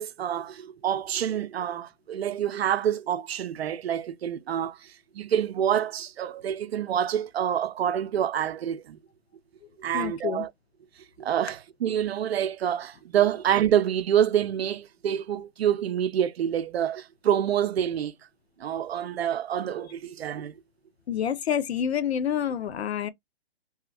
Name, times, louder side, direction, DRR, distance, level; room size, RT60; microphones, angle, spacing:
voice 1, 0.0-9.0 9.8-10.5 11.2-18.1 18.6-20.5, right 10 dB, 70° right, 0.5 m, -27 dB
voice 2, 9.9-10.5 21.1-23.1, left 9 dB, 75° left, 0.6 m, -28 dB
2.9 x 2.8 x 2.4 m
hypercardioid pair, 155°, 32 cm